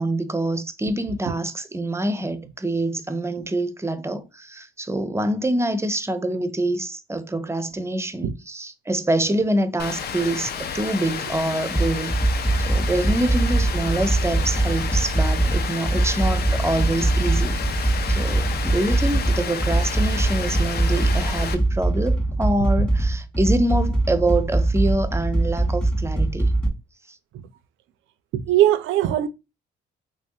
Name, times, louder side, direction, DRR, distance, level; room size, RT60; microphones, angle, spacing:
voice 1, 0.0-26.5, right 1 dB, 15° right, 0.4 m, -26 dB
Rain, 9.8-21.5, left 7 dB, 55° left, 0.5 m, -31 dB
sound 1, 11.7-26.7, right 2 dB, 5° left, 0.9 m, -22 dB
voice 2, 28.3-29.3, right 12 dB, 85° right, 0.4 m, -20 dB
3.4 x 3.0 x 2.6 m
cardioid pair, 90°, 20 cm